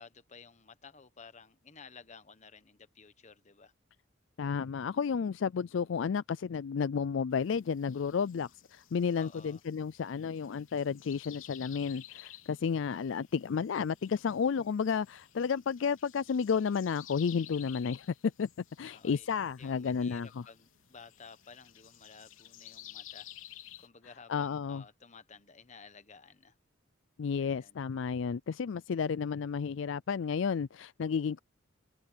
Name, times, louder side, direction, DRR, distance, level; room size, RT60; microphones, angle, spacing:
voice 1, 0.0-3.7 9.2-9.6 18.9-19.3 19.6-23.3 23.8-26.6 27.4-27.8, left 5 dB, 35° left, 1.1 m, -54 dB
voice 2, 4.4-18.5 18.8-20.4 24.3-24.8 27.2-31.4, left 6 dB, 65° left, 0.4 m, -32 dB
sound 1, 7.3-23.9, left 12 dB, 85° left, 3.7 m, -54 dB
open air
head